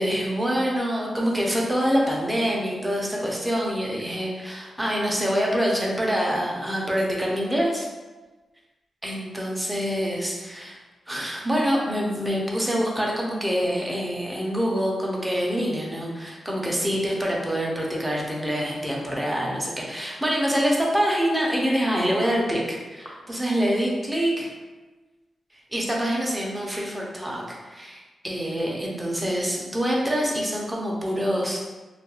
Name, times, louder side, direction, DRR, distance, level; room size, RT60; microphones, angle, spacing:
voice 1, 0.0-7.9 9.0-10.8 11.1-24.5 25.7-31.6, equal, 10° right, -3 dB, 0.5 m, -25 dB
2.3 x 2.1 x 2.9 m, 1.2 s
wide cardioid pair, 135°, 0 cm